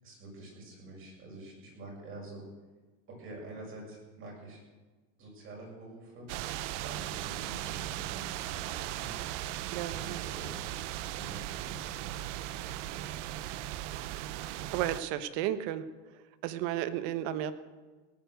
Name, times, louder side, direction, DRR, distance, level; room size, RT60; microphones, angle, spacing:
voice 1, 0.0-2.5 3.1-4.6 5.2-6.3 6.7-9.1 9.9-10.6 10.9-13.7, right 2 dB, 35° right, -1 dB, 7.3 m, -47 dB
sound 1, 6.3-15.0, right 14 dB, 75° right, 0.8 m, -38 dB
voice 2, 9.7-10.3 14.3-14.5 14.7-15.8 16.4-17.5, right 12 dB, 60° right, 12 dB, 1.3 m, -33 dB
18.0 x 9.6 x 8.0 m, 1.3 s
supercardioid pair, 140°, 36 cm